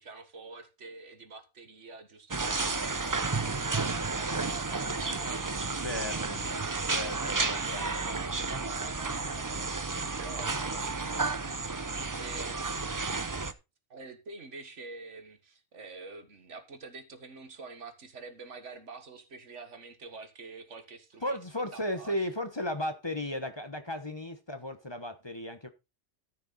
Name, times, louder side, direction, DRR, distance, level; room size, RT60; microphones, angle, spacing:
voice 1, 0.0-11.8 12.1-13.1 13.9-21.4 21.7-22.4, right 3 dB, 85° right, 1.9 m, -47 dB
sound 1, 2.3-13.5, right 3 dB, 25° right, 0.5 m, -32 dB
voice 2, 5.8-6.4 6.8-8.0 21.2-25.7, left 1 dB, 25° left, 1.1 m, -35 dB
13.0 x 6.9 x 4.1 m
omnidirectional pair, 1.2 m